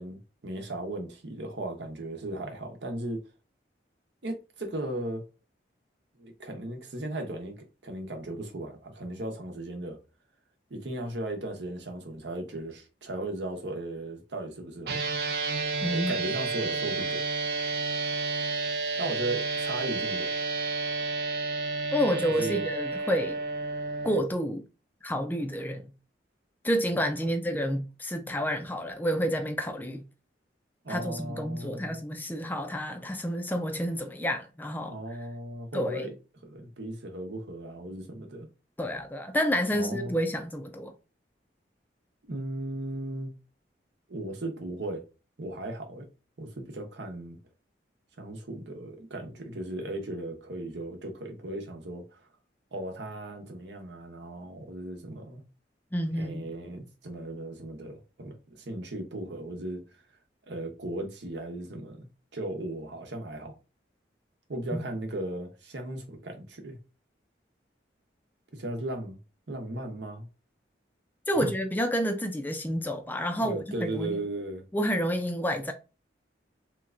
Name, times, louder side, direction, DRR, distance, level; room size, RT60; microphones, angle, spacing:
voice 1, 0.0-3.2 4.2-5.2 6.2-10.0 10.7-15.0 15.9-17.2 19.0-20.3 22.3-22.7 30.8-32.0 34.9-36.1 36.4-38.5 39.7-40.1 42.3-43.3 44.1-45.0 45.4-46.1 46.4-47.4 48.2-52.0 52.7-55.4 56.2-59.8 60.5-62.1 62.3-63.5 64.5-66.8 68.5-69.2 69.5-70.3 71.3-71.5 73.4-74.6, right 1 dB, 75° right, 0.9 m, -36 dB
sound 1, 14.9-24.2, right 3 dB, 60° right, 0.5 m, -31 dB
voice 2, 15.8-16.1 21.9-23.4 24.0-24.6 25.0-25.9 26.6-30.0 30.9-34.9 35.7-36.1 38.8-40.9 55.9-56.6 64.7-64.8 71.3-74.2 74.7-75.7, equal, 10° left, 0.3 m, -29 dB
3.3 x 3.0 x 2.4 m
head